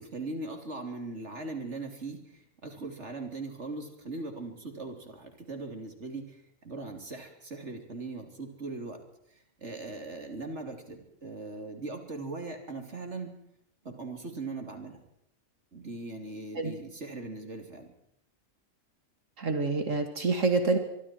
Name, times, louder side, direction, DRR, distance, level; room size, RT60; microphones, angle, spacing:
voice 1, 0.0-9.0 9.6-13.4 13.9-15.0 15.7-17.9, right 3 dB, 60° right, 4 dB, 3.6 m, -40 dB
voice 2, 19.4-20.8, right 3 dB, 75° right, 6 dB, 2.6 m, -27 dB
25.0 x 23.5 x 4.6 m, 0.75 s
omnidirectional pair, 1.3 m